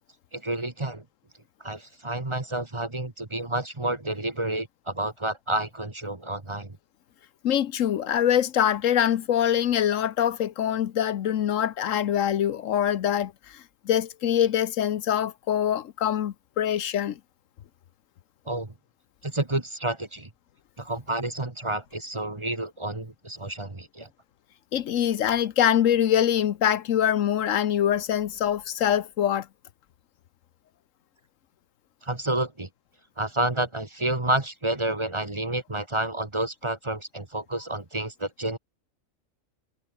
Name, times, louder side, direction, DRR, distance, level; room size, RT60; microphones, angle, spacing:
voice 1, 0.3-1.0 1.6-6.8 18.4-18.7 19.2-20.3 20.8-24.1 32.0-32.7 33.2-38.6, right 1 dB, 20° right, 1.6 m, -30 dB
voice 2, 7.4-17.2 24.7-29.5, left 10 dB, 75° left, 1.2 m, -24 dB
omnidirectional pair, 1.4 m